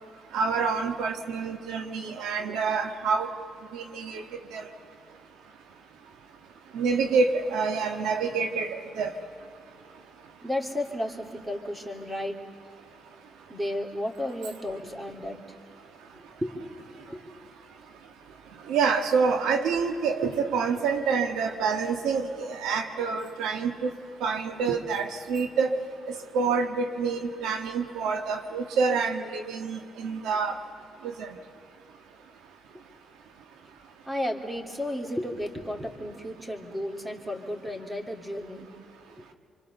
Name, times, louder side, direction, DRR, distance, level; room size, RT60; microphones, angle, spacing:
voice 1, 0.3-3.3 3.7-4.2 4.5-4.6 6.7-9.1 18.7-23.9 24.2-25.8 26.1-30.6 31.0-31.3, right 5 dB, 90° right, 6 dB, 1.5 m, -27 dB
voice 2, 10.4-12.4 13.5-15.4 16.1-16.5 17.1-17.2 34.1-38.7, left 1 dB, 15° right, 3 dB, 3.2 m, -33 dB
27.5 x 25.0 x 6.9 m, 2.5 s
cardioid pair, 80°, 0 cm